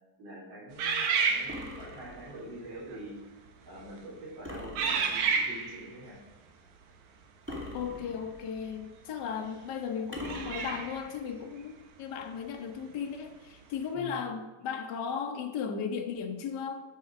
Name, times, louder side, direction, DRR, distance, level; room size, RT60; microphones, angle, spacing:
voice 1, 0.2-3.2 3.7-6.2 13.9-14.2, equal, 50° right, -7 dB, 4.6 m, -45 dB
sound 1, 0.8-2.0 2.8-3.0 3.7-4.0 4.8-5.9 8.6-8.7 10.2-11.1, right 5 dB, 75° right, 2.4 m, -30 dB
sound 2, 1.5-2.5 4.4-5.5 7.5-8.6 10.1-11.2, left 1 dB, 15° right, 0.5 m, -43 dB
voice 2, 7.7-16.8, left 6 dB, 85° left, 4 dB, 0.9 m, -36 dB
9.7 x 7.1 x 5.9 m, 1.2 s
omnidirectional pair, 3.6 m